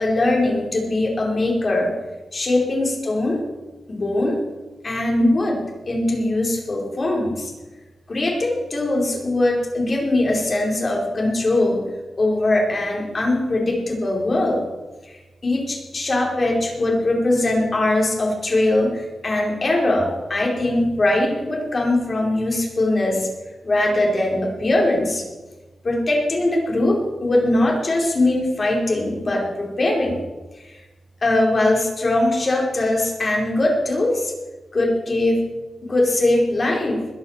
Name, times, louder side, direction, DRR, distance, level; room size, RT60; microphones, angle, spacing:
voice 1, 0.0-2.0 2.3-3.4 3.9-4.4 4.8-7.5 8.1-11.9 12.2-14.6 15.1-23.3 23.6-25.3 25.8-30.2 30.6-30.8 31.2-34.3 34.7-35.5 35.8-37.1, left 2 dB, 45° left, -1 dB, 4.6 m, -21 dB
21.0 x 8.0 x 7.4 m, 1.2 s
wide cardioid pair, 90°, 0 cm